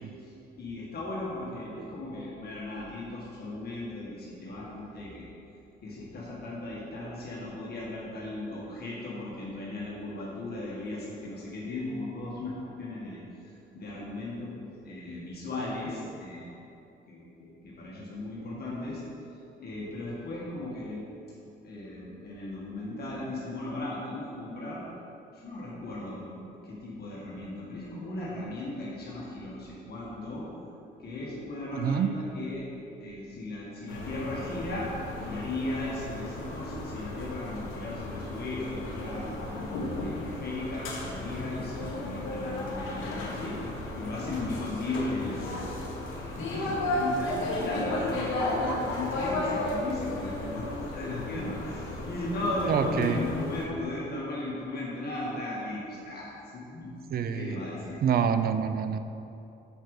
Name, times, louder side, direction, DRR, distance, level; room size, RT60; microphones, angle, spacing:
voice 1, 0.2-5.3 5.8-16.5 17.1-19.0 19.6-21.1 21.6-24.8 25.3-30.5 31.0-32.6 33.0-34.9 35.2-39.4 40.0-43.6 43.9-45.7 46.0-56.9 57.3-58.0, left 2 dB, 55° left, -5 dB, 1.8 m, -37 dB
voice 2, 31.7-32.1 52.7-53.2 57.1-57.6 58.0-59.0, right 7 dB, 50° right, 10 dB, 0.5 m, -26 dB
sound 1, 33.9-53.7, left 2 dB, 90° left, 1.3 m, -34 dB
6.8 x 5.8 x 4.9 m, 2.8 s
cardioid pair, 90°, 20 cm